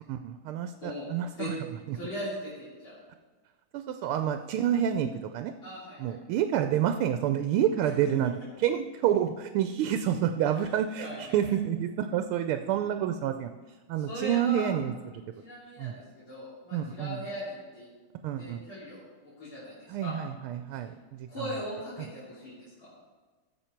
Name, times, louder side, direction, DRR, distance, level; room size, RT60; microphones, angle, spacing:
voice 1, 0.1-2.0 3.7-5.5 6.0-8.3 8.6-13.5 13.9-15.2 15.8-15.9 16.7-17.2 18.2-18.6 19.9-21.6, right 10 dB, 90° right, 8 dB, 1.5 m, -29 dB
voice 2, 1.9-3.0 5.6-6.1 7.8-8.1 10.5-10.7 11.0-11.4 14.0-14.7 15.4-17.9 18.4-19.0 19.4-20.2 21.3-22.9, left 1 dB, 75° left, -11 dB, 4.1 m, -39 dB
15.0 x 7.1 x 4.5 m, 1.4 s
omnidirectional pair, 2.3 m